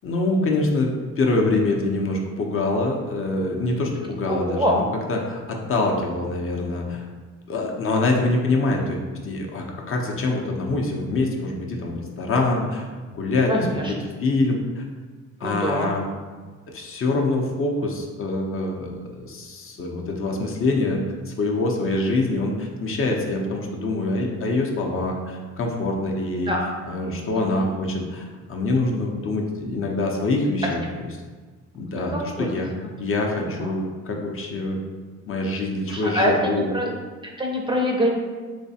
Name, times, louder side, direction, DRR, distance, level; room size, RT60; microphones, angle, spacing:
voice 1, 0.0-0.9 1.2-7.0 7.5-9.0 9.2-12.9 13.1-14.8 15.4-16.0 16.7-21.0 21.3-31.1 31.7-32.7 33.0-34.8 35.3-36.7, left 2 dB, 45° left, 0 dB, 0.6 m, -25 dB
voice 2, 4.3-4.7 13.5-13.9 15.4-15.9 26.5-26.6 27.4-27.5 32.4-32.5 33.6-33.7 35.9-36.9 37.2-38.1, equal, 15° right, -1 dB, 0.5 m, -24 dB
3.2 x 3.1 x 2.7 m, 1.4 s
cardioid pair, 90°, 30 cm